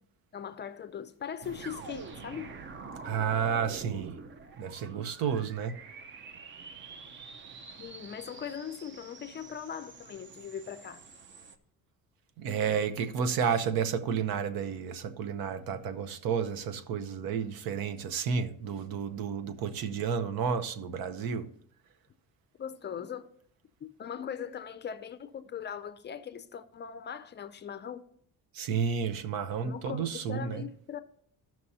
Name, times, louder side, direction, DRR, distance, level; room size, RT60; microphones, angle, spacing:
voice 1, 0.3-2.5 7.8-11.0 22.6-23.3 23.8-28.0 29.6-31.0, left 8 dB, 30° left, 0.4 m, -40 dB
sound 1, 1.4-11.6, right 4 dB, 35° right, 0.6 m, -46 dB
voice 2, 3.0-4.2 4.6-5.8 12.4-21.5 28.5-30.6, right 6 dB, 75° right, 0.8 m, -31 dB
15.0 x 6.0 x 2.8 m
cardioid pair, 145°, 35 cm